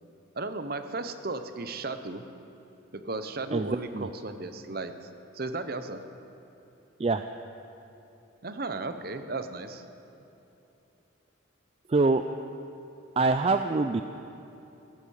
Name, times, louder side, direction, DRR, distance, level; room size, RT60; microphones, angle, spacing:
voice 1, 0.4-2.2 2.9-4.9 5.3-6.0 8.4-9.8, right 3 dB, 50° right, 9 dB, 0.8 m, -35 dB
voice 2, 3.5-4.1 7.0-7.2 11.9-12.2 13.2-14.0, right 3 dB, 30° right, 8 dB, 0.3 m, -25 dB
16.0 x 14.0 x 6.5 m, 2.9 s
head